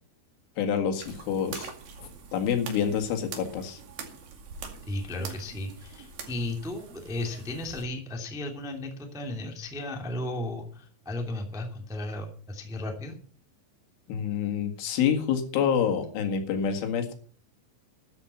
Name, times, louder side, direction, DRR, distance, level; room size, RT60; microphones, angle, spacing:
voice 1, 0.6-1.7 2.3-3.8 14.1-17.1, left 7 dB, 85° left, 5 dB, 4.4 m, -27 dB
sound 1, 1.0-7.8, right 5 dB, 55° right, 3.6 m, -44 dB
voice 2, 4.8-13.2, left 1 dB, ahead, 3 dB, 1.0 m, -35 dB
13.5 x 10.5 x 5.7 m, 0.43 s
omnidirectional pair, 5.4 m